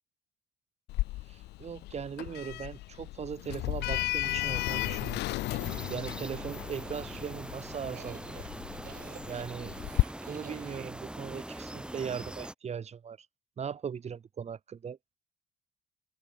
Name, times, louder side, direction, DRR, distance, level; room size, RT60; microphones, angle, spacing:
Sliding door, 0.9-10.0, left 18 dB, 85° left, 1.4 m, -34 dB
voice 1, 1.3-8.4 9.3-9.7 10.2-13.3 13.6-15.0, right 7 dB, 40° right, 5.6 m, -39 dB
sound 1, 4.7-10.9, right 10 dB, 55° right, 3.9 m, -52 dB
sound 2, 5.6-12.5, right 1 dB, 5° right, 2.4 m, -42 dB
open air
cardioid pair, 110°, 17 cm